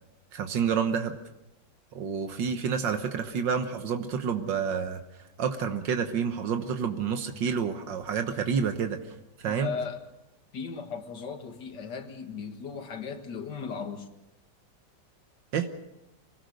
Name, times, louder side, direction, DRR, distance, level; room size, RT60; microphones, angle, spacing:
voice 1, 0.3-1.2 1.9-5.0 5.4-9.0 9.4-9.7 15.5-15.7, right 6 dB, 85° right, 1.9 m, -29 dB
voice 2, 9.5-10.0 10.5-14.1, left 5 dB, 70° left, 2.4 m, -37 dB
25.0 x 18.5 x 6.5 m
omnidirectional pair, 1.9 m